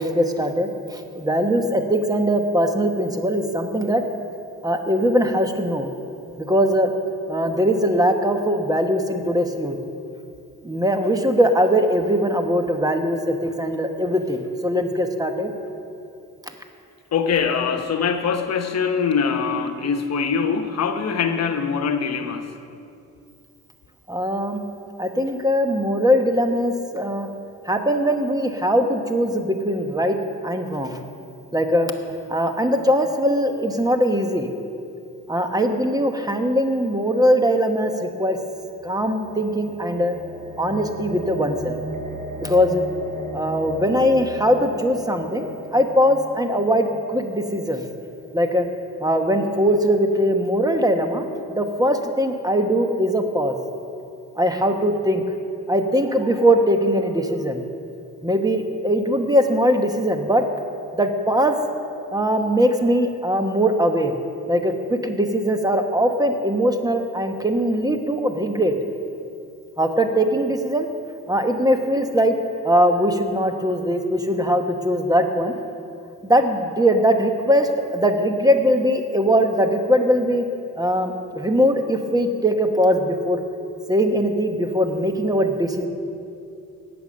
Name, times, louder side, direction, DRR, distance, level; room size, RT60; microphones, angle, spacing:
voice 1, 0.0-4.0 4.6-5.9 6.4-6.9 7.3-9.8 10.6-15.5 24.1-24.6 25.0-27.3 27.7-30.2 30.4-31.0 31.5-31.9 32.3-34.5 35.3-38.4 38.8-40.1 40.6-41.8 42.4-42.8 43.3-47.8 48.3-48.7 49.0-53.5 54.4-55.2 55.7-57.6 58.2-60.4 60.9-61.6 62.1-64.2 64.5-68.7 69.8-70.9 71.3-72.4 72.6-75.5 76.2-80.4 80.8-83.4 83.9-85.9, equal, 10° right, 5 dB, 1.1 m, -21 dB
voice 2, 17.1-22.5, left 6 dB, 60° left, 6 dB, 1.1 m, -23 dB
sound 1, 38.5-48.6, right 1 dB, 25° right, 1.9 m, -36 dB
17.5 x 7.0 x 6.4 m, 2.6 s
cardioid pair, 90°, 30 cm